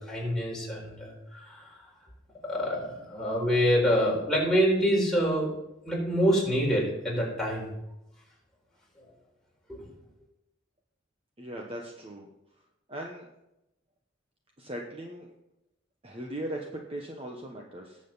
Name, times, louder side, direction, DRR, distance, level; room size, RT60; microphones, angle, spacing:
voice 1, 0.0-1.8 2.4-5.5 5.8-7.7, equal, 5° left, -4 dB, 4.3 m, -26 dB
voice 2, 11.4-12.3 12.9-13.3 14.6-15.3 16.0-18.0, right 1 dB, 30° right, 0 dB, 1.1 m, -38 dB
18.5 x 7.6 x 4.1 m, 0.88 s
head